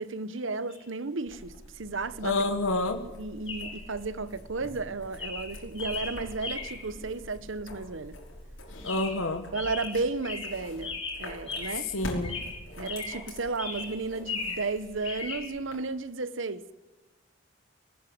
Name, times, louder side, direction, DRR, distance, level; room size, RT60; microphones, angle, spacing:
voice 1, 0.0-2.4 3.1-8.2 9.5-11.9 12.7-16.7, right 3 dB, 70° right, 1.0 m, -33 dB
Chirp tweet, 0.7-0.8 3.5-3.9 4.6-4.8 5.2-6.9 8.8-9.3 9.5-11.9 12.2-13.3 13.6-14.7 15.0-15.4, left 4 dB, 30° left, 7.1 m, -37 dB
sound 1, 1.3-15.8, left 1 dB, 65° left, 5.4 m, -45 dB
voice 2, 2.2-3.0 8.8-9.4 11.9-12.4, left 2 dB, 85° left, 1.5 m, -28 dB
19.5 x 19.0 x 7.9 m
head